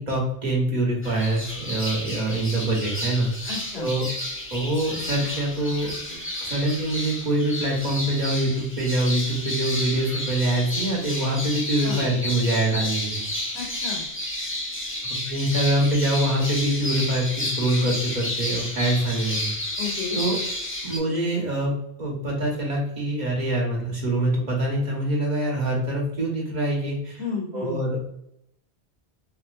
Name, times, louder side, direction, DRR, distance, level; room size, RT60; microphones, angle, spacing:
voice 1, 0.0-3.5 3.8-4.1 4.5-5.9 6.4-13.2 15.1-19.5 20.1-20.4 20.8-21.7 22.0-27.2 27.5-28.2, right 1 dB, 40° right, -2 dB, 1.1 m, -25 dB
sound 1, 1.0-21.0, left 1 dB, 20° left, 0.4 m, -31 dB
voice 2, 3.5-3.9 11.8-12.0 13.5-14.0 19.8-20.2 27.2-27.8, left 5 dB, 70° left, -7 dB, 1.8 m, -32 dB
3.5 x 2.7 x 2.3 m, 0.75 s
omnidirectional pair, 1.1 m